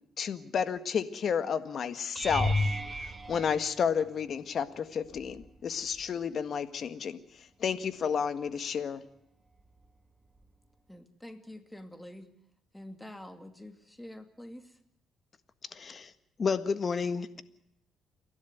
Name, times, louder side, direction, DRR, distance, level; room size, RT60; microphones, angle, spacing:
voice 1, 0.2-2.5 3.3-7.2 7.6-9.0, left 7 dB, 55° left, 12 dB, 1.7 m, -31 dB
sound 1, 2.2-4.4 5.1-5.6 5.9-6.1 10.4-10.5, left 1 dB, 25° right, 2.1 m, -33 dB
voice 2, 10.9-12.3 12.7-14.8, left 1 dB, 5° left, 8 dB, 2.5 m, -47 dB
voice 3, 15.7-16.1 16.4-17.4, left 5 dB, 40° left, 12 dB, 1.6 m, -31 dB
29.5 x 12.0 x 9.3 m, 0.79 s
cardioid pair, 90°, 0 cm